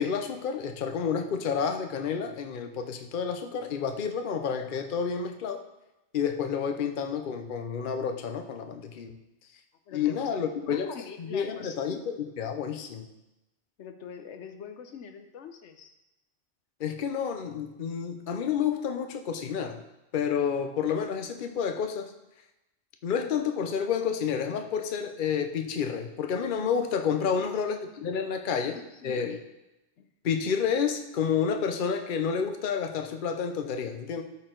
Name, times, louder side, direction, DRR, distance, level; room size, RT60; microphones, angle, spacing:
voice 1, 0.0-5.6 6.1-9.2 9.9-13.1 16.8-19.8 20.1-22.1 23.0-28.8 29.0-29.4 30.2-34.2, left 7 dB, 50° left, 6 dB, 0.8 m, -30 dB
voice 2, 9.9-12.0 13.8-15.9 27.2-27.6 28.5-29.4 30.0-30.1, left 6 dB, 85° left, 7 dB, 1.1 m, -44 dB
13.5 x 4.6 x 3.8 m, 0.94 s
omnidirectional pair, 1.2 m